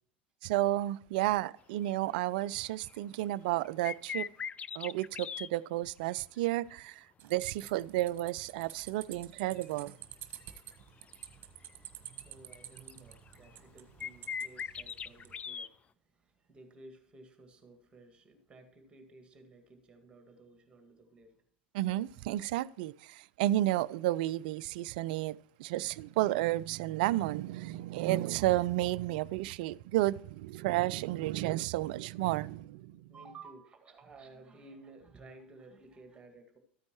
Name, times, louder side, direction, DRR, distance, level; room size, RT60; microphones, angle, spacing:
voice 1, 0.4-4.3 4.8-7.0 7.3-9.9 21.7-32.9, right 16 dB, 55° right, 0.3 m, -32 dB
sound 1, 1.8-2.0 2.4-2.6 2.9-3.0 3.6-5.5 9.6-9.7 10.4-11.3 11.7-11.8 12.2-12.3 12.5-13.6 14.0-15.7, left 7 dB, 20° left, 0.4 m, -40 dB
sound 2, 7.2-15.3, right 11 dB, 40° right, 1.3 m, -50 dB
voice 2, 11.7-15.8 16.1-21.4 25.7-26.0 32.8-36.6, right 3 dB, 15° right, 2.0 m, -55 dB
13.5 x 9.4 x 3.0 m
figure-of-eight pair, 80°, 6 cm